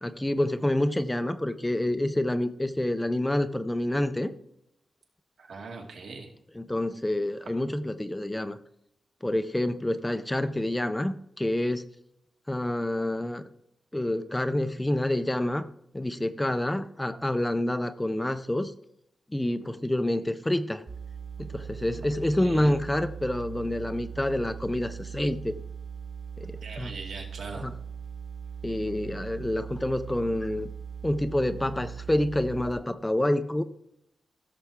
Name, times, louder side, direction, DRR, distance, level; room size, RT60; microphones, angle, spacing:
voice 1, 0.0-4.3 6.6-8.6 9.2-11.8 12.5-13.4 13.9-15.7 15.9-18.7 19.3-20.8 21.5-25.5 26.4-26.9 27.6-27.7 28.6-30.7 31.0-33.6, left 1 dB, 10° left, 11 dB, 0.4 m, -28 dB
voice 2, 5.4-6.3 22.4-22.7 26.6-27.7, right 4 dB, 75° right, 1 dB, 2.4 m, -40 dB
sound 1, 20.9-32.7, right 7 dB, 50° right, 2.2 m, -40 dB
16.0 x 6.8 x 3.5 m, 0.76 s
wide cardioid pair, 175°, 0 cm